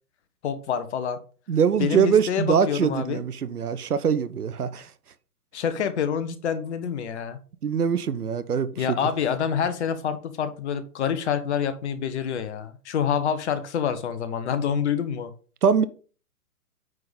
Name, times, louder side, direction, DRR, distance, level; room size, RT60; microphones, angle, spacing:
voice 1, 0.4-1.2 1.8-3.2 5.5-7.4 8.8-15.3, left 8 dB, 50° left, 1.2 m, -27 dB
voice 2, 1.5-4.9 7.6-9.0 15.6-15.9, right 7 dB, 80° right, 0.9 m, -23 dB
9.3 x 3.9 x 5.2 m
figure-of-eight pair, 125°, 45 cm